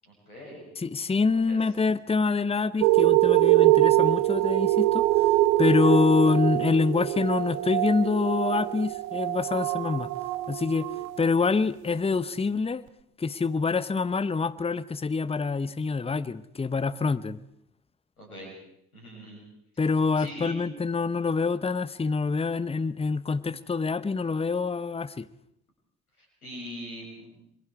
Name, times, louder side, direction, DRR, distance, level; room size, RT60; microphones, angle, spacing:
voice 1, 0.0-0.6 1.5-1.6 18.2-18.5 18.9-19.4 20.2-20.5 26.2-27.4, equal, 85° left, 0 dB, 7.0 m, -42 dB
voice 2, 0.8-5.3 5.6-10.1 10.5-10.9 11.2-12.8 13.2-17.4 19.8-25.3, left 4 dB, 15° left, 16 dB, 0.9 m, -26 dB
sound 1, 2.8-11.7 12.3-12.4, right 19 dB, 65° right, 1.0 m, -24 dB
28.0 x 22.0 x 4.8 m, 0.73 s
figure-of-eight pair, 50°, 43 cm